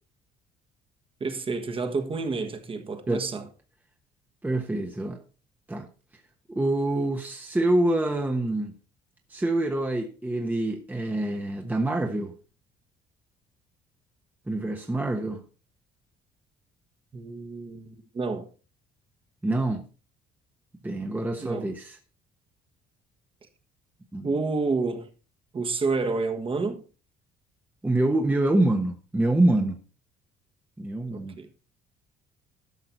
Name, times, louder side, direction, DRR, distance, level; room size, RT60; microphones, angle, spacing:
voice 1, 1.2-3.5 17.1-18.5 21.4-21.7 24.2-25.1 25.5-26.8 31.1-31.5, right 4 dB, 30° right, 1.6 m, -29 dB
voice 2, 4.4-5.2 5.7-5.9 6.5-8.7 9.3-12.3 14.5-15.4 19.4-19.8 20.8-22.0 24.1-24.3 27.8-29.8 30.8-31.4, right 2 dB, 10° right, 1.1 m, -26 dB
12.0 x 5.8 x 4.4 m
cardioid pair, 110°, 17 cm